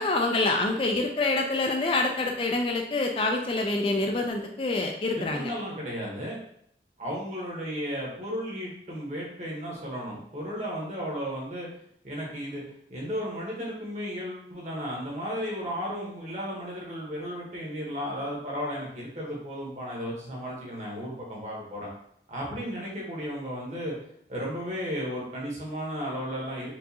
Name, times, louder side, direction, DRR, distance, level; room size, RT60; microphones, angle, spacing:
voice 1, 0.0-5.5, left 2 dB, 30° left, 2 dB, 0.3 m, -26 dB
voice 2, 5.1-6.4 7.0-11.7 12.0-12.6 12.9-21.9 22.3-23.9 24.3-26.7, equal, 40° right, -4 dB, 1.1 m, -34 dB
4.5 x 2.4 x 2.8 m, 0.69 s
head